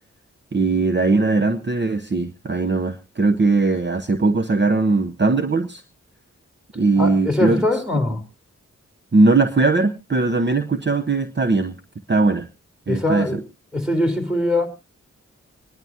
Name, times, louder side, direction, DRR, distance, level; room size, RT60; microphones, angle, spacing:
voice 1, 0.5-5.8 6.7-7.8 9.1-11.8 12.1-12.5 12.9-13.4, right 3 dB, 40° right, 0.9 m, -19 dB
voice 2, 7.0-8.2 12.9-13.4 13.7-14.7, left 1 dB, ahead, 3.8 m, -22 dB
27.0 x 10.5 x 2.8 m
cardioid pair, 45°, 29 cm